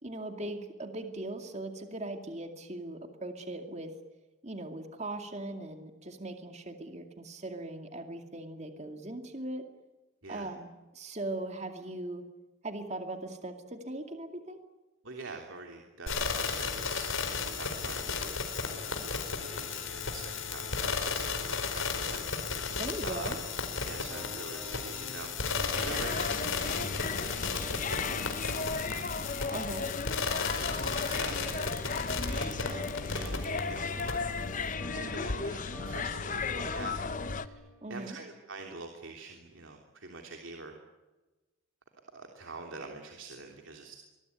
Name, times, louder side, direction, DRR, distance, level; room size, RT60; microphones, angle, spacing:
voice 1, 0.0-4.0 4.4-9.6 10.3-12.2 12.6-14.6 22.7-23.4 29.5-29.9 37.8-38.2, right 2 dB, 35° right, 6 dB, 2.4 m, -39 dB
voice 2, 15.0-17.1 17.5-22.8 23.0-23.3 23.8-26.7 27.4-29.1 29.5-29.7 30.6-37.0 37.4-37.5 37.9-40.7 42.1-44.0, right 3 dB, 75° right, 2 dB, 3.3 m, -45 dB
sound 1, 16.1-33.6 34.0-34.1, left 5 dB, 85° left, 4.6 m, -34 dB
sound 2, 23.7-29.5 30.6-38.0, equal, ahead, 5.8 m, -46 dB
sound 3, 25.7-37.5, left 4 dB, 40° left, 0.9 m, -35 dB
24.5 x 22.0 x 9.6 m, 1.2 s
head